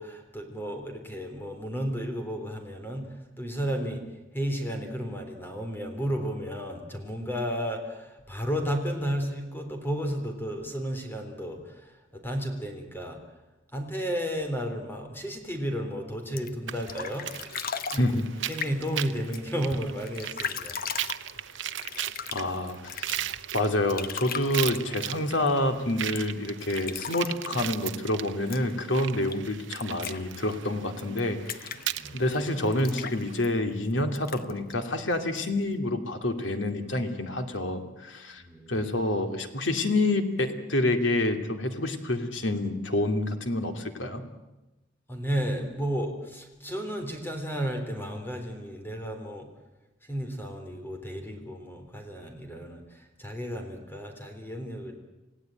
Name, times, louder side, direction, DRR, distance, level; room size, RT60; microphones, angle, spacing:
voice 1, 0.0-4.1 4.3-13.2 13.7-17.3 17.9-18.1 18.5-20.8 31.9-32.2 38.4-38.8 45.1-49.5 50.0-54.9, equal, 10° left, 4 dB, 3.6 m, -33 dB
sound 1, 16.2-35.8, left 7 dB, 50° left, 1.0 m, -40 dB
sound 2, 16.7-33.4, right 11 dB, 75° right, 0.9 m, -38 dB
voice 2, 22.3-23.2 23.5-31.7 32.1-38.4 38.7-44.2, left 1 dB, 75° left, 6 dB, 2.5 m, -28 dB
28.0 x 16.5 x 9.1 m, 1.0 s
head